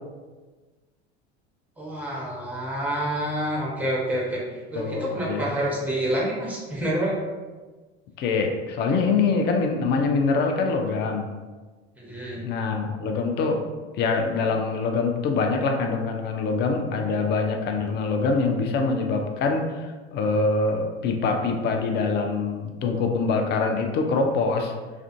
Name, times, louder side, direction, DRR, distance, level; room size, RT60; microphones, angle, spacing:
voice 1, 1.8-7.2 12.0-12.4, right 1 dB, 5° right, -4 dB, 0.8 m, -28 dB
voice 2, 4.7-5.5 8.2-11.3 12.4-13.6 13.9-24.7, left 4 dB, 35° left, 4 dB, 0.4 m, -24 dB
2.4 x 2.2 x 2.5 m, 1.3 s
hypercardioid pair, 75°, 33 cm